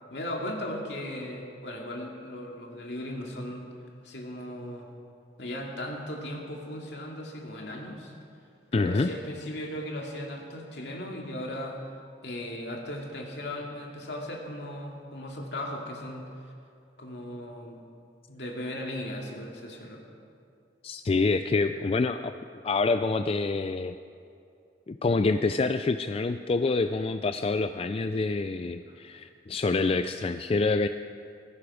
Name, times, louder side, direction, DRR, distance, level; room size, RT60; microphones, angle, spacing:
voice 1, 0.1-3.7 4.0-4.9 5.4-8.1 8.7-11.8 12.2-16.3 17.0-17.8 18.3-20.0 28.9-29.0, left 1 dB, 70° left, 0 dB, 2.4 m, -37 dB
voice 2, 8.7-9.1 20.8-22.3 22.6-23.9 24.9-30.9, left 3 dB, 35° left, 9 dB, 0.4 m, -26 dB
18.0 x 15.5 x 5.0 m, 2.5 s
head